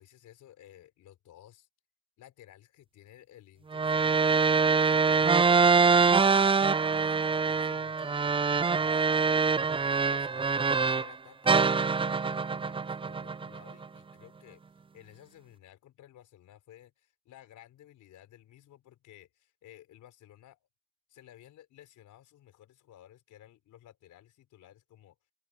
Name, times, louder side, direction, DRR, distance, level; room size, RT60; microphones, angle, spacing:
voice 1, 0.0-1.7 2.2-14.6 14.9-20.7 21.1-25.1, left 12 dB, 80° left, 4.5 m, -55 dB
sound 1, 3.7-11.1 11.5-13.8, right 5 dB, 20° right, 0.5 m, -24 dB
open air
cardioid pair, 90°, 30 cm